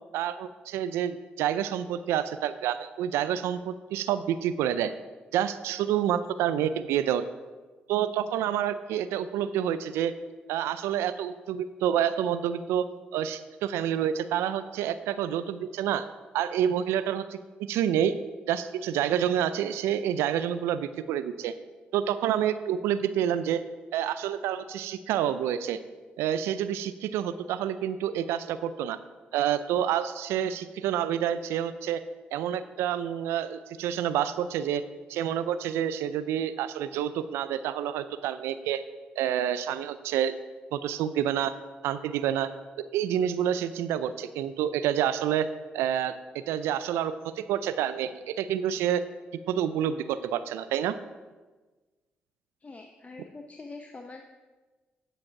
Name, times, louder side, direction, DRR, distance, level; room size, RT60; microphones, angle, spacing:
voice 1, 0.1-4.9 5.3-7.2 7.9-10.1 10.5-12.9 13.1-16.1 16.3-17.4 17.7-18.1 18.5-21.5 21.9-23.6 23.9-25.8 26.2-29.0 29.3-32.0 32.3-34.8 35.1-38.8 39.2-40.3 40.7-41.6 41.8-42.5 42.9-45.5 45.7-49.0 49.5-51.0, right 10 dB, 85° right, 13 dB, 0.4 m, -28 dB
voice 2, 52.6-54.2, left 3 dB, 35° left, 4 dB, 0.7 m, -44 dB
9.8 x 5.2 x 5.8 m, 1.3 s
supercardioid pair, 55°, 4 cm